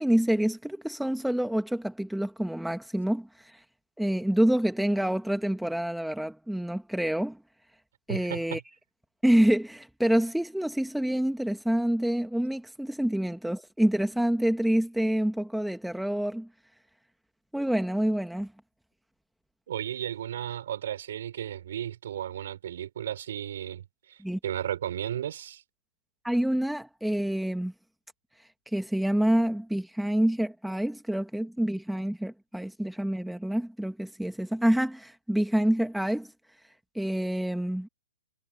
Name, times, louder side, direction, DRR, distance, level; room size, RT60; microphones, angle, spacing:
voice 1, 0.0-3.5 4.0-7.4 8.1-8.6 9.2-16.5 17.5-18.5 24.2-24.4 26.2-27.7 28.7-36.3 37.0-37.9, right 1 dB, ahead, 1.8 m, -27 dB
voice 2, 8.1-8.6 19.7-25.6, right 10 dB, 65° right, 4.8 m, -34 dB
hypercardioid pair, 140°, 0 cm